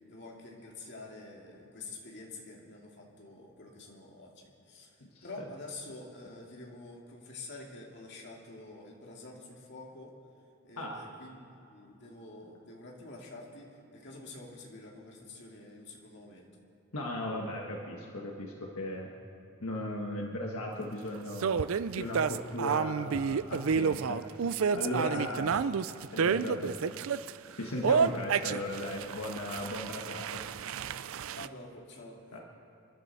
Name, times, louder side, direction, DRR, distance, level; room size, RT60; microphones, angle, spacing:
voice 1, 0.1-4.9 5.2-10.1 10.6-16.5 24.9-25.8 31.4-32.4, left 2 dB, 50° left, -1 dB, 2.4 m, -48 dB
voice 2, 16.9-19.1 19.6-21.6 22.0-25.6 26.1-27.0 27.5-30.7 32.3-32.4, left 1 dB, 75° left, 0 dB, 1.5 m, -37 dB
sound 1, 21.4-27.3 27.8-31.5, right 6 dB, 70° right, 0.4 m, -30 dB
27.0 x 11.5 x 4.1 m, 2.9 s
head